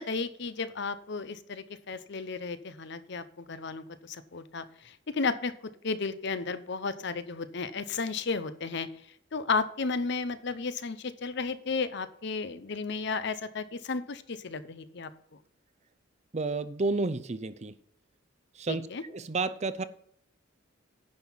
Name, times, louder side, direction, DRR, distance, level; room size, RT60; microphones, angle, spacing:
voice 1, 0.0-5.5 5.8-8.9 9.3-15.1 18.7-19.0, left 4 dB, 55° left, 13 dB, 0.7 m, -33 dB
voice 2, 16.3-17.7 18.6-19.8, right 3 dB, 35° right, 12 dB, 0.6 m, -31 dB
10.5 x 6.0 x 5.6 m, 0.69 s
head